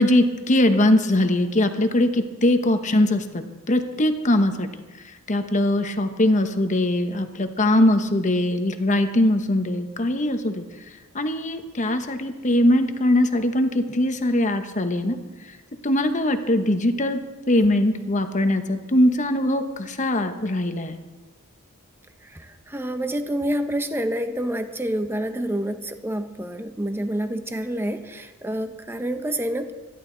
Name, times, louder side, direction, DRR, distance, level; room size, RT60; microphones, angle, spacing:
voice 1, 0.0-4.7 5.3-10.6 11.1-15.2 15.8-17.2 17.5-21.0, left 1 dB, 35° left, 7 dB, 1.0 m, -21 dB
voice 2, 22.2-29.7, right 1 dB, 10° right, 8 dB, 0.8 m, -28 dB
25.5 x 11.5 x 3.9 m, 1.2 s
head